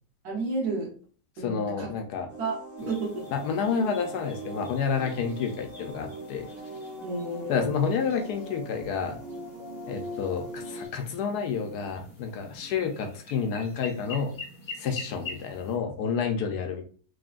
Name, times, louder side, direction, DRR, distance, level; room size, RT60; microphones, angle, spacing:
voice 1, 0.2-0.9 1.4-1.9 2.4-3.3 7.0-7.7, right 3 dB, 70° right, -3 dB, 1.3 m, -31 dB
voice 2, 1.4-2.3 3.3-6.5 7.5-9.2 9.9-14.3 14.8-16.8, left 6 dB, 70° left, 4 dB, 1.2 m, -29 dB
sound 1, 2.3-10.9, right 1 dB, 40° right, 1.4 m, -41 dB
sound 2, 2.8-15.8, left 3 dB, 35° left, 1.0 m, -46 dB
3.7 x 3.1 x 2.4 m, 0.43 s
omnidirectional pair, 1.8 m